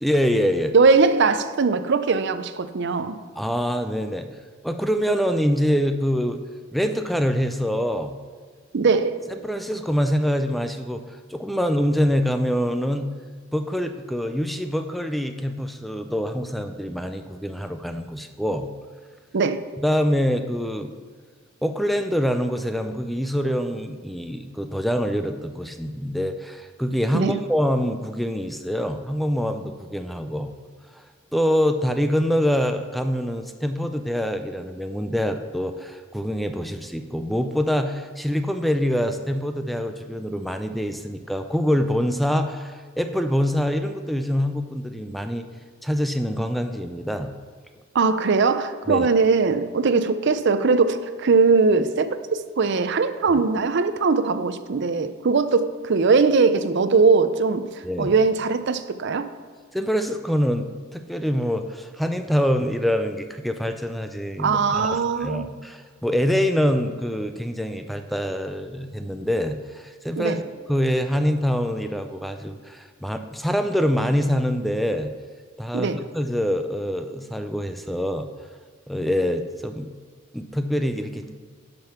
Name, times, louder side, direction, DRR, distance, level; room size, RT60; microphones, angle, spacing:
voice 1, 0.0-0.7 3.4-4.3 4.6-6.4 6.7-8.1 9.3-13.1 13.5-18.7 19.8-20.9 21.6-30.5 31.0-31.1 31.3-45.5 45.8-47.3 48.9-49.1 57.8-58.1 59.7-70.4 70.7-75.1 75.6-78.3 78.9-79.9 80.3-81.4, equal, ahead, 0.4 m, -25 dB
voice 2, 0.7-3.2 8.7-9.2 19.3-19.6 27.1-27.4 47.9-57.6 58.0-59.3 64.4-65.5 70.2-70.4 75.7-76.0, right 4 dB, 60° right, 0.5 m, -20 dB
11.5 x 5.3 x 5.7 m
head